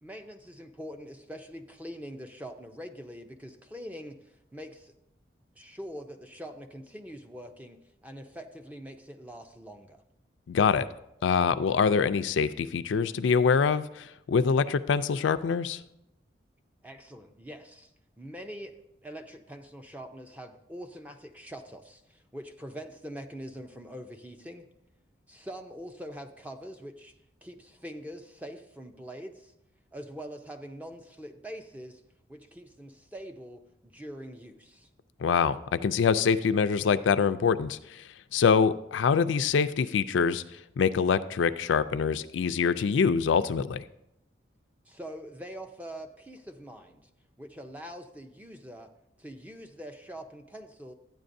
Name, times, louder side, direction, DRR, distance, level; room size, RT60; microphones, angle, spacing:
voice 1, 0.0-4.9 5.6-10.0 16.8-18.8 19.0-24.7 25.3-27.1 27.4-29.5 29.9-32.0 32.3-34.9 44.9-47.1 47.4-48.9 49.2-50.9, equal, 10° right, 6 dB, 0.5 m, -44 dB
voice 2, 10.5-10.9 11.2-15.8 35.2-38.0 38.3-40.4 40.8-43.8, left 6 dB, 85° left, 12 dB, 0.4 m, -25 dB
12.5 x 9.1 x 2.6 m, 0.84 s
head